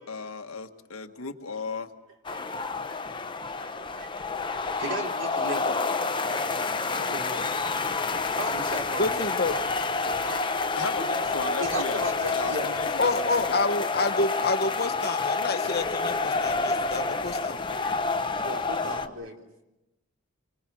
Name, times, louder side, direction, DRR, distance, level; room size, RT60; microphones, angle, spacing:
voice 1, 0.1-1.9 10.7-13.8 17.7-18.0, left 4 dB, 90° left, 6 dB, 1.6 m, -36 dB
sound 1, 2.2-19.1, left 4 dB, 25° left, 0.9 m, -29 dB
voice 2, 3.6-5.8 6.2-7.5 8.3-9.6 10.0-10.4 11.5-12.7 15.8-15.9 17.3-19.4, right 1 dB, 60° right, 2 dB, 3.6 m, -37 dB
voice 3, 9.0-9.6 13.0-17.6, left 3 dB, 50° left, 10 dB, 1.1 m, -28 dB
29.0 x 24.0 x 6.3 m, 0.96 s
head